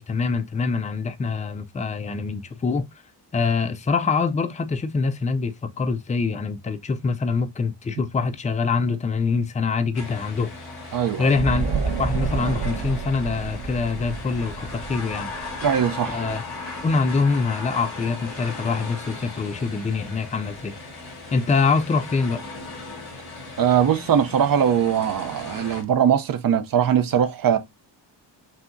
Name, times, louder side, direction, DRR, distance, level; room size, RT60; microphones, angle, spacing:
voice 1, 0.0-2.9 3.3-10.5 11.2-11.7 12.0-15.3 16.1-16.4 16.8-20.8 21.3-22.4, left 4 dB, 20° left, 0.3 m, -24 dB
sound 1, 9.9-25.8, left 3 dB, 55° left, 2.2 m, -37 dB
voice 2, 10.9-11.3 15.6-16.2 23.6-27.6, right 8 dB, 50° right, 0.6 m, -21 dB
sound 2, 11.3-16.2, right 5 dB, 90° right, 1.7 m, -29 dB
5.6 x 2.7 x 2.5 m
wide cardioid pair, 165°, 44 cm